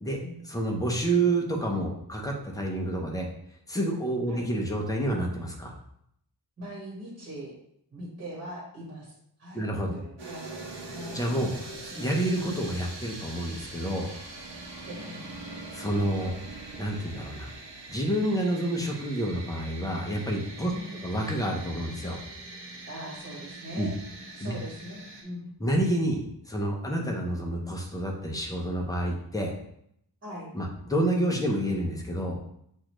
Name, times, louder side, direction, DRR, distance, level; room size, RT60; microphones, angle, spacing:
voice 1, 0.5-3.3 3.7-5.7 9.5-9.9 11.1-11.5 11.8-14.1 15.7-16.4 16.8-17.5 17.9-20.7 21.0-22.2 23.8-23.9 24.4-24.5 25.6-26.2 26.5-29.5 30.5-32.4, right 1 dB, 10° left, 0 dB, 0.6 m, -28 dB
voice 2, 6.6-7.5 7.9-9.1 9.4-11.6 14.9-15.2 20.7-21.1 22.9-23.9 24.3-25.4 30.2-30.5, right 1 dB, 30° right, -5 dB, 1.3 m, -41 dB
sound 1, 10.2-25.2, right 2 dB, 85° right, 1.1 m, -43 dB
6.2 x 2.5 x 3.0 m, 0.72 s
wide cardioid pair, 170°, 41 cm